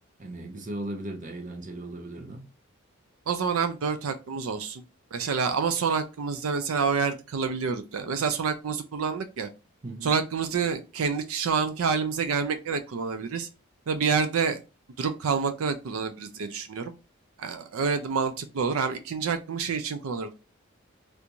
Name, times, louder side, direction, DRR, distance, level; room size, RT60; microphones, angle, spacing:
voice 1, 0.2-2.5 9.8-10.1, right 1 dB, 35° right, 0.6 m, -37 dB
voice 2, 3.3-4.8 5.1-9.5 10.0-13.5 13.9-14.6 15.0-16.9 17.4-20.4, right 5 dB, 80° right, 0.4 m, -28 dB
3.4 x 2.5 x 2.9 m
head